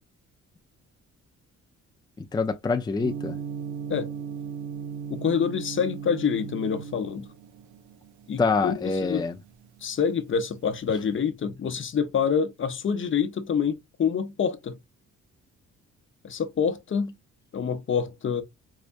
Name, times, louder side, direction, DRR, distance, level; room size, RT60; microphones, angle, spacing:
voice 1, 2.2-3.4 8.4-9.4, left 4 dB, 15° left, 0.4 m, -26 dB
Gong, 3.0-11.1, right 7 dB, 80° right, 0.6 m, -38 dB
voice 2, 5.1-7.3 8.3-9.2 9.8-14.8 16.2-17.1 17.5-18.4, left 7 dB, 40° left, 0.8 m, -27 dB
4.7 x 2.1 x 2.5 m
cardioid pair, 90°, 30 cm